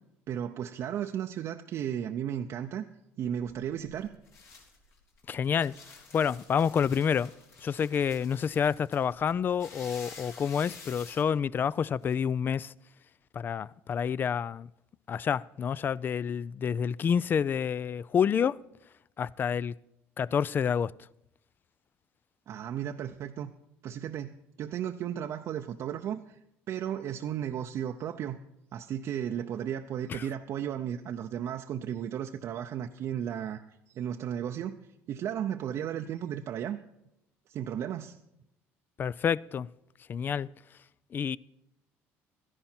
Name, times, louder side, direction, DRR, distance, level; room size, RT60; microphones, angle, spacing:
voice 1, 0.3-2.8 3.2-4.1 22.5-23.5 23.8-26.4 26.7-28.4 28.7-33.6 33.9-34.8 35.1-36.8 37.5-38.2, right 9 dB, 55° right, 0.6 m, -34 dB
sound 1, 3.3-12.1, left 4 dB, 60° left, 3.1 m, -51 dB
voice 2, 5.3-5.7 6.1-7.3 7.6-12.7 13.3-14.7 15.1-18.6 19.2-19.7 20.2-20.9 30.1-30.3 39.0-39.7 40.1-40.5 41.1-41.4, left 7 dB, 35° left, 0.3 m, -28 dB
13.5 x 11.0 x 4.4 m
supercardioid pair, 95°, 6 cm